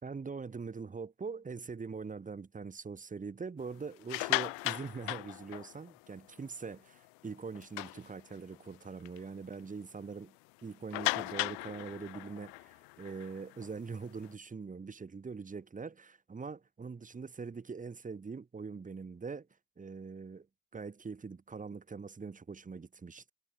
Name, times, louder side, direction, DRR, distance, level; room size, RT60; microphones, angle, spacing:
voice 1, 0.0-10.3 10.6-19.5 19.8-20.5 20.7-23.3, right 5 dB, 20° right, 2.6 m, -43 dB
sound 1, 3.9-6.0 6.5-6.7 7.0-7.1 7.5-8.6 9.0-9.2 9.5-9.6 10.9-14.3, left 33 dB, 75° left, 1.5 m, -37 dB
supercardioid pair, 120°, 42 cm